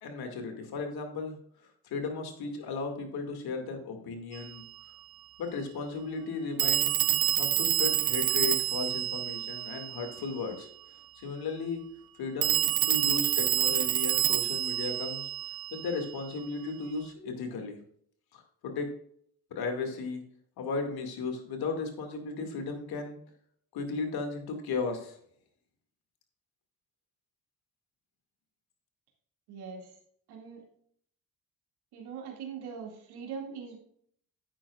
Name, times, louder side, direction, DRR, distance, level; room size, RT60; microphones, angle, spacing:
voice 1, 0.0-1.4 1.8-4.6 5.4-6.9 7.4-10.7 11.2-11.8 12.2-15.3 15.7-17.8 18.3-18.9 19.5-20.2 20.6-23.2 23.7-25.2, left 4 dB, 75° left, 4 dB, 2.2 m, -35 dB
Telephone, 4.3-4.5 6.6-10.3 12.4-16.1, right 14 dB, 65° right, 0.7 m, -28 dB
voice 2, 29.5-30.0 30.3-30.6 31.9-33.8, right 6 dB, 80° right, 0 dB, 2.3 m, -41 dB
10.0 x 8.9 x 2.4 m, 0.64 s
supercardioid pair, 65°, 38 cm